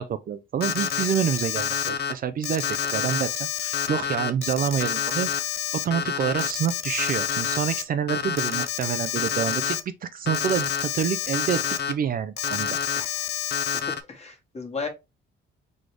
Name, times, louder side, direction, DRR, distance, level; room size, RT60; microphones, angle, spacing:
voice 1, 0.0-5.5 5.8-11.6 11.9-12.8, right 8 dB, 45° right, 0.4 m, -27 dB
Alarm, 0.6-2.1 2.4-7.8 8.1-9.8 10.3-11.9 12.4-14.0, left 9 dB, 55° left, 0.6 m, -28 dB
voice 2, 13.9-14.9, left 4 dB, 35° left, 1.5 m, -35 dB
4.2 x 3.1 x 3.2 m
cardioid pair, 90°, 20 cm